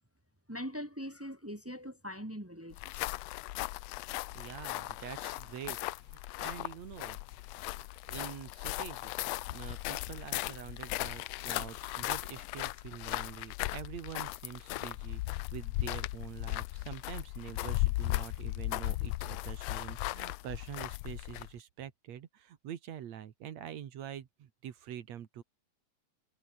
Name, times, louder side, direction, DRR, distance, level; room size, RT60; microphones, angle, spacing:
voice 1, 0.5-3.2, equal, 10° right, 0.9 m, -42 dB
sound 1, 2.7-21.6, left 19 dB, 80° left, 1.5 m, -37 dB
voice 2, 4.3-7.4 7.7-9.1 9.5-25.4, right 10 dB, 65° right, 2.7 m, -46 dB
omnidirectional pair, 3.3 m